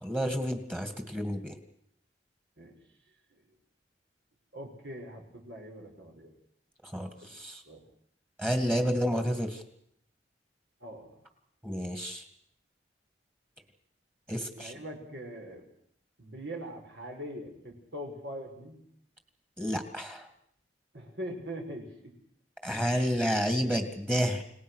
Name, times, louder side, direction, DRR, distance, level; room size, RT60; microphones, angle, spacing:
voice 1, 0.0-1.5 6.9-7.6 8.4-9.6 11.6-12.2 14.3-14.7 19.6-20.2 22.6-24.4, equal, 10° right, 6 dB, 2.3 m, -30 dB
voice 2, 4.5-6.3 7.2-7.3 7.7-7.8 10.8-11.2 14.5-15.6 16.2-18.8 20.9-22.1, equal, 70° right, 2 dB, 5.9 m, -42 dB
29.5 x 18.0 x 6.5 m, 0.71 s
head